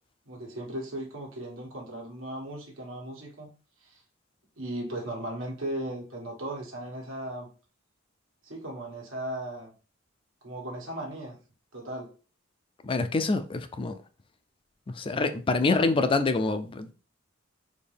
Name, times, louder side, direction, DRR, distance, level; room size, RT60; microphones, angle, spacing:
voice 1, 0.3-3.5 3.8-4.0 4.6-7.5 8.4-9.7 10.4-11.4 11.7-12.1, right 1 dB, 80° right, 1.5 m, -37 dB
voice 2, 12.8-13.9 15.0-16.9, left 3 dB, 25° left, 0.4 m, -26 dB
4.2 x 2.6 x 3.4 m
head